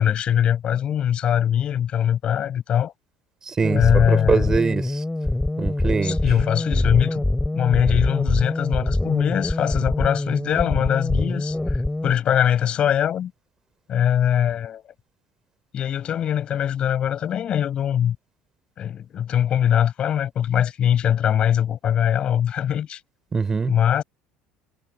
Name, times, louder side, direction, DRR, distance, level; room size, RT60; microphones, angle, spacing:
voice 1, 0.0-2.9 3.7-4.6 6.0-7.2 7.5-13.3 13.9-14.8 15.7-18.2 18.8-23.0 23.7-24.0, left 9 dB, 40° left, 7.3 m, -22 dB
voice 2, 3.5-5.0 5.6-6.2 23.3-23.7, right 5 dB, 20° right, 6.8 m, -23 dB
sound 1, 3.6-12.1, left 1 dB, 5° left, 5.8 m, -24 dB
cardioid pair, 140°, 3 cm